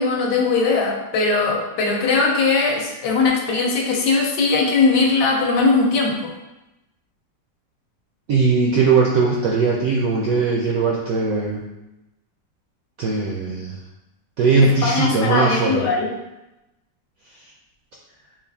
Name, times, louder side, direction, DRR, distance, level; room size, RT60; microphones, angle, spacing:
voice 1, 0.0-6.3 14.6-16.1, left 4 dB, 75° left, 0 dB, 1.2 m, -20 dB
voice 2, 8.3-11.7 13.0-13.8 14.4-15.8, right 4 dB, 75° right, -3 dB, 0.8 m, -19 dB
3.8 x 2.4 x 3.4 m, 0.95 s
omnidirectional pair, 1.9 m